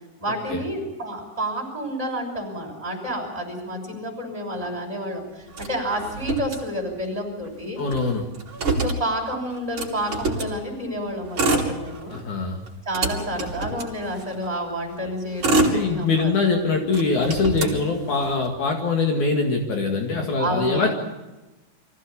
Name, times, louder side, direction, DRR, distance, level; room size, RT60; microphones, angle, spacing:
voice 1, 0.2-7.8 8.8-12.2 12.8-16.8 17.6-17.8 20.4-20.9, equal, 10° right, 0 dB, 5.8 m, -30 dB
Motor vehicle (road), 5.5-7.1 7.4-7.5 7.8-10.6 11.2-12.3 12.7-14.5 15.1-16.5 16.9-18.5, right 2 dB, 40° right, 3.9 m, -26 dB
voice 2, 7.8-8.2 12.1-12.6 15.6-20.9, left 4 dB, 65° left, 2 dB, 3.3 m, -23 dB
24.0 x 15.5 x 8.6 m, 1.1 s
omnidirectional pair, 3.8 m